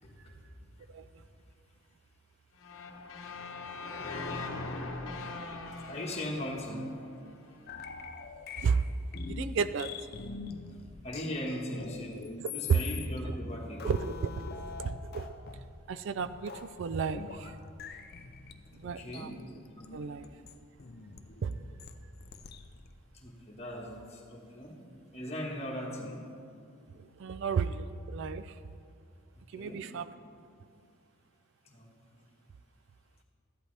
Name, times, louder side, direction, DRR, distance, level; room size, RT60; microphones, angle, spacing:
voice 1, 0.9-1.2 8.6-8.9 9.3-9.9 12.7-12.8 13.8-15.3 15.9-17.6 18.7-19.3 19.9-20.3 21.4-21.6 27.0-28.6 29.5-30.1, right 6 dB, 55° right, 13 dB, 0.3 m, -32 dB
sound 1, 2.6-7.6, left 3 dB, 65° left, 1.0 m, -41 dB
voice 2, 5.9-6.9 11.0-12.2 12.5-14.0 18.8-19.4 23.1-24.8 25.1-26.2 29.6-29.8 31.6-31.9, left 1 dB, 30° left, -2 dB, 1.5 m, -38 dB
sound 2, 7.7-22.9, left 5 dB, 45° left, 0.5 m, -45 dB
14.0 x 11.0 x 3.3 m, 2.5 s
head